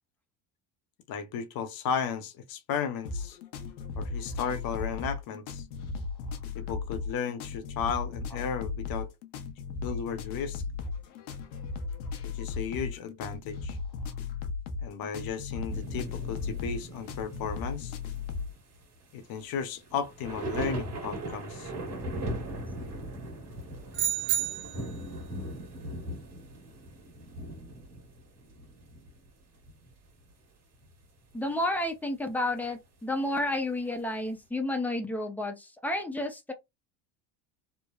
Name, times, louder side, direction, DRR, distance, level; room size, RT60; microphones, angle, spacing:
voice 1, 1.1-3.4 3.9-5.6 6.5-9.1 9.8-10.6 12.3-13.8 14.8-17.9 19.1-21.7, left 7 dB, 50° left, 0.6 m, -34 dB
sound 1, 3.0-18.5, left 4 dB, 85° left, 0.8 m, -36 dB
sound 2, 15.7-29.3 29.5-29.9 30.7-30.9, right 1 dB, 35° right, 1.5 m, -39 dB
sound 3, 23.9-25.0, right 11 dB, 60° right, 1.3 m, -30 dB
voice 2, 31.3-36.5, left 1 dB, 5° left, 0.5 m, -31 dB
3.1 x 2.0 x 2.3 m
supercardioid pair, 105°, 48 cm